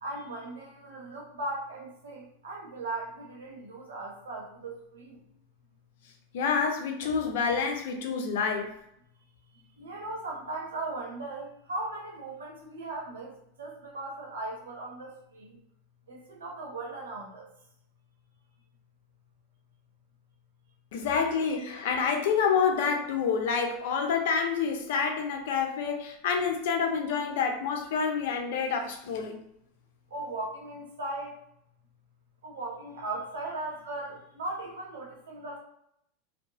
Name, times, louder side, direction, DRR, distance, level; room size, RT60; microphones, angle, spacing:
voice 1, 0.0-5.2 9.8-15.6 16.1-17.5 30.1-31.4 32.4-35.6, right 2 dB, 85° right, -1 dB, 0.9 m, -38 dB
voice 2, 6.3-8.7 20.9-29.4, left 6 dB, 70° left, 4 dB, 0.6 m, -28 dB
2.7 x 2.2 x 2.8 m, 0.75 s
hypercardioid pair, 105°, 0 cm